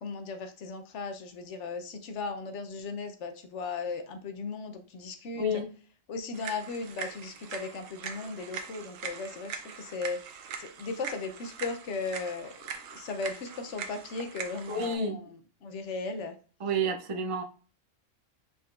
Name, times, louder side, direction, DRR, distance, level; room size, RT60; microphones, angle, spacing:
voice 1, 0.0-5.5 6.1-10.2 10.6-16.3, left 4 dB, 70° left, 7 dB, 1.0 m, -37 dB
sound 1, 6.3-14.9, right 6 dB, 90° right, 1.0 m, -42 dB
voice 2, 14.7-15.2 16.6-17.4, right 1 dB, 40° right, 4 dB, 0.5 m, -29 dB
5.2 x 3.9 x 2.4 m, 0.39 s
omnidirectional pair, 1.3 m